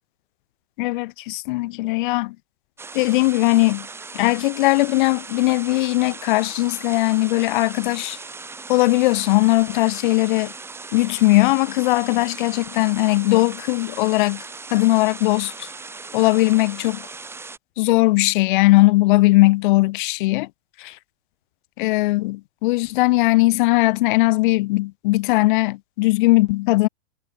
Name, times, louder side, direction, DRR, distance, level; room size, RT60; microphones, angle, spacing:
voice 1, 0.8-2.4 2.9-3.9 4.1-8.2 8.7-10.5 10.9-14.4 14.7-15.7 16.1-17.0 17.8-20.5 20.8-21.0 21.8-26.9, left 21 dB, 45° left, 2.1 m, -19 dB
sound 1, 2.8-17.6, right 4 dB, 5° right, 3.0 m, -38 dB
supercardioid pair, 160°, 35 cm